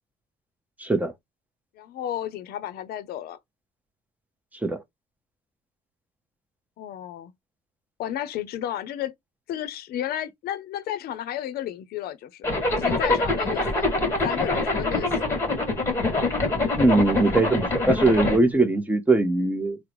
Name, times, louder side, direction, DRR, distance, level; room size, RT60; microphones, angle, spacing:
voice 1, 0.8-1.1 4.6-4.8 16.8-19.8, right 2 dB, 10° right, 0.7 m, -21 dB
voice 2, 1.8-3.4 6.8-7.3 8.0-9.1 9.5-12.5 12.8-13.9 14.2-15.4, left 11 dB, 65° left, 0.6 m, -32 dB
Zipper (clothing), 12.4-18.4, left 2 dB, 15° left, 1.5 m, -24 dB
3.6 x 2.1 x 3.0 m
cardioid pair, 110°, 17 cm